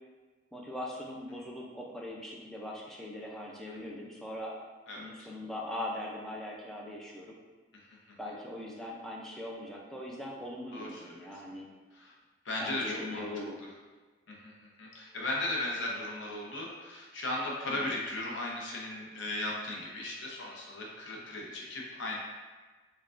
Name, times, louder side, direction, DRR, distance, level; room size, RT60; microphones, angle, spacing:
voice 1, 0.5-4.5 5.0-7.4 8.2-11.7 12.6-13.6 17.7-17.9, left 1 dB, ahead, -3 dB, 0.4 m, -40 dB
voice 2, 4.9-5.3 7.7-8.0 10.7-11.1 11.9-12.1 12.4-13.2 14.3-22.2, left 1 dB, 80° left, -3 dB, 0.7 m, -37 dB
4.7 x 2.2 x 2.4 m, 1.3 s
head